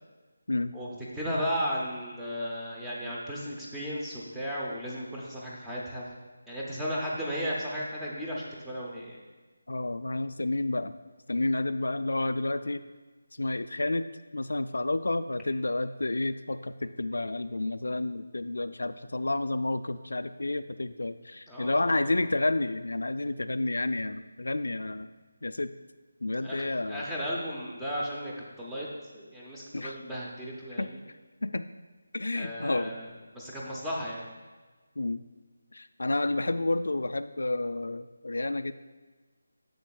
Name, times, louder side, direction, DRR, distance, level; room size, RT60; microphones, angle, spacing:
voice 1, 1.2-6.0 6.5-9.2 21.5-22.1 26.4-28.9 29.1-31.0 32.3-33.1 33.3-34.2, equal, ahead, -6 dB, 0.5 m, -35 dB
voice 2, 9.7-10.9 11.3-12.8 13.3-14.1 14.3-25.1 25.4-25.7 26.2-27.0 29.7-30.0 30.8-31.7 32.1-33.0 35.0-35.2 35.7-38.7, left 2 dB, 85° left, 10 dB, 0.3 m, -30 dB
9.0 x 7.2 x 2.3 m, 1.3 s
figure-of-eight pair, 180°, 0 cm